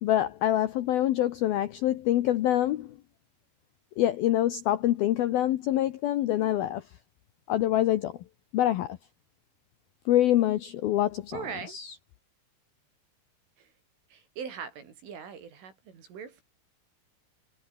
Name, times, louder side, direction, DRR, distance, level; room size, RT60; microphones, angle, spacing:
voice 1, 0.0-3.0 4.0-6.8 7.5-8.2 8.5-9.0 10.1-11.9, left 13 dB, 75° left, 2.2 m, -25 dB
voice 2, 11.3-11.8 13.6-13.7 14.1-16.4, right 7 dB, 75° right, 7.5 m, -40 dB
omnidirectional pair, 5.7 m